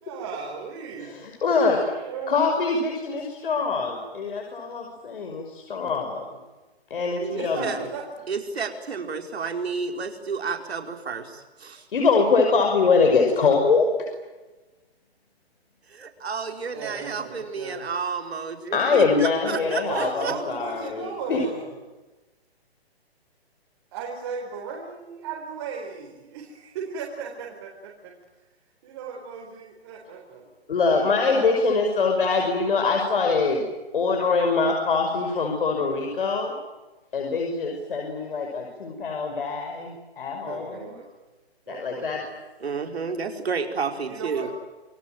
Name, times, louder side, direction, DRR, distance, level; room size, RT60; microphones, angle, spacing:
voice 1, 0.0-1.2 1.9-2.7 3.2-3.3 7.3-8.2 16.7-18.0 19.8-21.8 23.9-28.1 28.8-30.5 30.8-31.6 40.3-41.0 41.7-42.3 44.1-44.5, right 5 dB, 25° right, -2 dB, 4.5 m, -36 dB
voice 2, 1.0-2.0 2.3-6.2 6.9-7.7 11.9-14.1 18.7-21.4 30.7-33.6 33.9-36.5 37.1-40.9 41.7-42.2, left 4 dB, 55° left, 2 dB, 5.8 m, -23 dB
voice 3, 7.2-7.8 8.3-11.8 15.9-20.3 42.6-44.5, right 5 dB, 75° right, 4 dB, 5.0 m, -31 dB
28.5 x 22.0 x 9.1 m, 1.2 s
hypercardioid pair, 175°, 32 cm